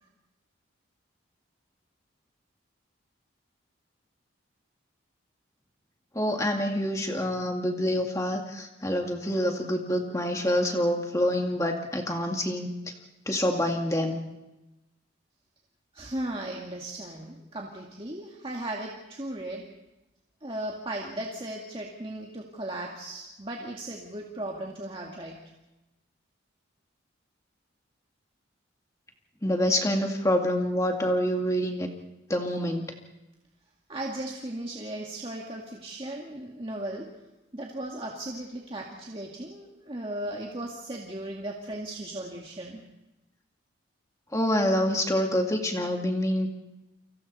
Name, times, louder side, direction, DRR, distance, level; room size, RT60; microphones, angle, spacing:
voice 1, 6.1-12.7 13.3-14.2 29.4-31.9 32.3-32.8 44.3-46.5, equal, 15° left, 2 dB, 2.2 m, -26 dB
voice 2, 15.9-19.6 20.4-25.4 33.9-37.1 37.5-42.8, right 1 dB, 25° right, -1 dB, 2.0 m, -36 dB
30.0 x 24.0 x 4.2 m, 1.0 s
head